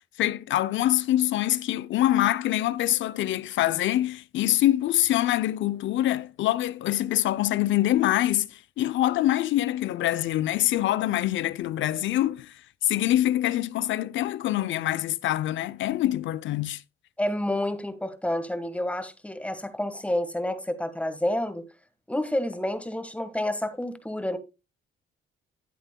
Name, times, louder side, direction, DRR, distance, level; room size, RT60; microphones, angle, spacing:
voice 1, 0.2-16.8, left 14 dB, 75° left, 0.5 m, -25 dB
voice 2, 17.2-21.7 22.1-24.4, left 1 dB, 5° left, 1.4 m, -29 dB
13.0 x 8.0 x 2.2 m
cardioid pair, 90°, 20 cm